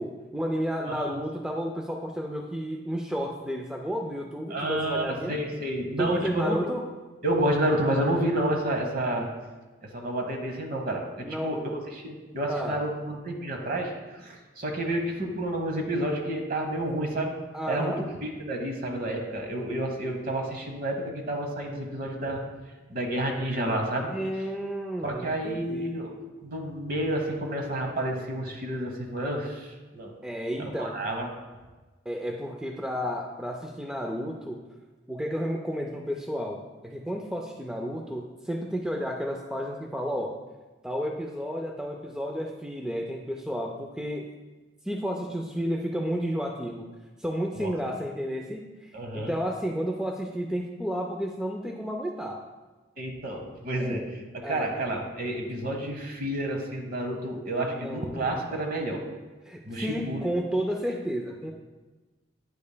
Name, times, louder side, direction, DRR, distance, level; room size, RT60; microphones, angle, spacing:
voice 1, 0.0-5.4 6.0-6.9 11.2-11.7 12.5-12.8 17.5-18.0 24.1-25.9 30.2-31.0 32.1-34.6 35.1-40.4 40.8-44.3 44.8-46.9 47.2-52.4 53.8-54.1 54.4-54.8 57.6-58.7 59.5-61.5, equal, 5° right, 1 dB, 0.3 m, -32 dB
voice 2, 4.5-6.6 7.2-9.3 9.8-17.3 17.7-22.4 22.9-24.1 25.0-26.1 26.4-29.7 29.9-30.2 30.8-31.3 47.6-47.7 48.9-49.3 53.0-54.0 54.3-59.1 59.6-60.3, right 1 dB, 50° right, 2 dB, 1.0 m, -30 dB
9.2 x 5.2 x 2.2 m, 1.2 s
head